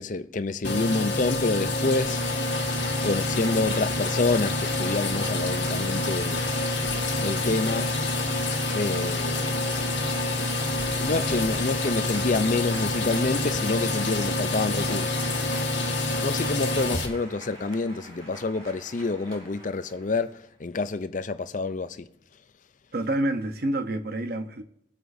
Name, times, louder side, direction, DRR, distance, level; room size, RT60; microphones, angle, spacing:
voice 1, 0.0-2.2 3.0-6.5 7.2-7.9 8.7-9.6 11.0-15.2 16.2-22.1, left 3 dB, 45° left, 0.5 m, -28 dB
sound 1, 0.6-17.1, left 2 dB, 80° left, 1.6 m, -27 dB
Applause / Crowd, 1.7-20.3, right 1 dB, 35° right, 5.1 m, -42 dB
voice 2, 22.9-24.6, right 1 dB, 55° right, 0.9 m, -28 dB
23.5 x 8.0 x 2.7 m
head